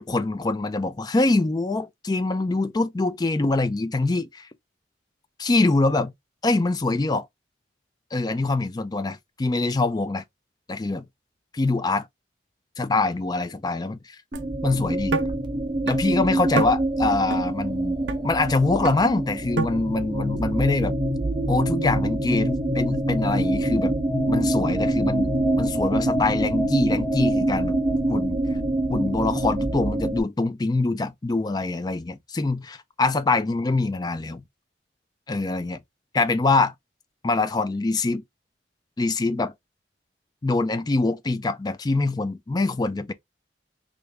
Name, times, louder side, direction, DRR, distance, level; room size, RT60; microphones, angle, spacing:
voice 1, 0.0-4.5 5.4-6.1 6.4-7.3 8.1-10.2 10.7-11.0 11.5-12.1 12.8-14.2 14.6-15.2 15.9-18.0 18.2-20.9 21.5-23.9 24.3-27.8 28.1-28.4 28.9-34.4 35.3-35.8 36.1-36.7 37.2-38.2 39.0-39.5 40.4-43.1, left 3 dB, 20° left, 0.4 m, -24 dB
sound 1, 14.3-30.2, right 1 dB, 25° right, 0.7 m, -25 dB
sound 2, 14.3-14.5 15.1-15.2 15.9-16.0 16.6-16.7 17.3-17.4 18.1-18.2 18.8-19.0 19.6-19.7, right 4 dB, 75° right, 0.5 m, -26 dB
3.2 x 2.6 x 3.3 m
head